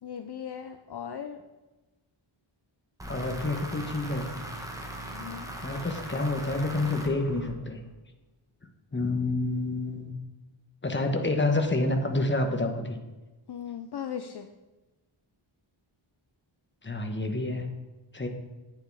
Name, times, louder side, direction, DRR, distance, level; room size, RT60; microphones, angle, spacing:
voice 1, 0.0-1.4 5.1-5.5 13.5-14.5, left 8 dB, 55° left, 8 dB, 0.6 m, -38 dB
sound 1, 3.0-7.9, right 1 dB, 5° right, 1.5 m, -39 dB
voice 2, 3.1-4.3 5.6-7.8 8.9-10.2 10.8-13.0 16.8-17.7 18.1-18.3, left 2 dB, 25° left, 4 dB, 1.3 m, -28 dB
10.5 x 8.9 x 4.8 m, 1.1 s
wide cardioid pair, 135°, 49 cm